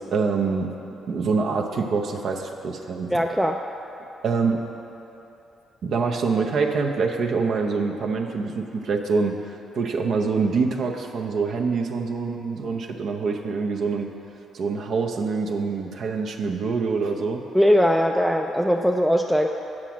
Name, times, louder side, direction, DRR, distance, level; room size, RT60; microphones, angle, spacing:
voice 1, 0.1-0.7 1.1-3.1 4.2-4.6 5.8-9.3 9.7-14.1 14.5-17.4, right 4 dB, 65° right, 2 dB, 0.7 m, -25 dB
voice 2, 3.1-3.6 17.5-19.5, equal, ahead, 2 dB, 0.3 m, -20 dB
7.5 x 4.9 x 7.2 m, 3.0 s
cardioid pair, 90°, 0 cm